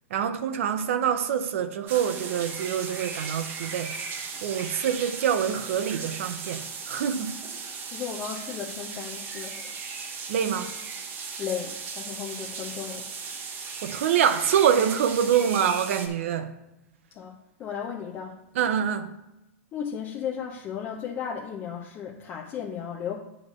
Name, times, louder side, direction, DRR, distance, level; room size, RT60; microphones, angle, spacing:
voice 1, 0.1-3.9 4.4-7.4 10.3-10.7 13.8-16.5 18.6-19.1, right 8 dB, 65° right, 0.6 m, -25 dB
sound 1, 1.9-16.1, right 5 dB, 25° right, 0.9 m, -37 dB
voice 2, 7.9-9.8 11.4-13.1 17.1-17.3 17.6-18.4 19.7-23.2, left 8 dB, 25° left, 0.7 m, -35 dB
8.7 x 3.3 x 6.6 m
supercardioid pair, 150°, 8 cm